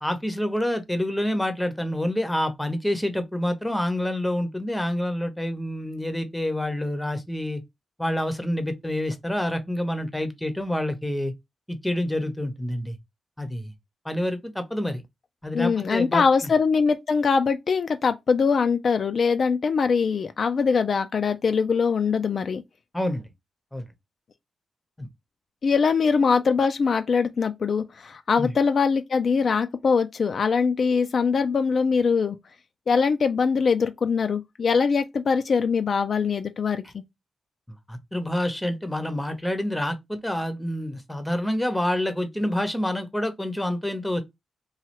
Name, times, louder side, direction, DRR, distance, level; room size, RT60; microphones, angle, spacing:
voice 1, 0.0-7.6 8.0-11.3 11.7-13.0 13.4-13.7 14.0-15.0 15.4-16.2 22.9-23.3 23.7-23.8 25.0-25.1 28.4-28.5 37.9-44.2, left 1 dB, 5° left, 0.8 m, -27 dB
voice 2, 15.5-22.6 25.6-32.4 32.9-36.8, left 5 dB, 60° left, 0.4 m, -22 dB
3.1 x 2.3 x 2.9 m
cardioid pair, 65°, 0 cm